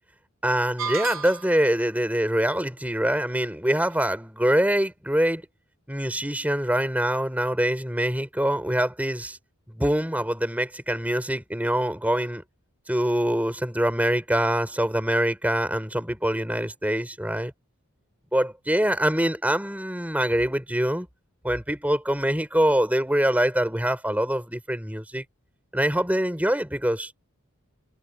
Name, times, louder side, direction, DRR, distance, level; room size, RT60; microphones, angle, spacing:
voice 1, 0.4-5.4 5.9-9.4 9.7-12.4 12.9-17.5 18.3-21.1 21.4-25.2 25.7-27.1, right 1 dB, 5° right, 5.0 m, -24 dB
sound 1, 0.8-1.8, right 5 dB, 65° right, 3.5 m, -32 dB
head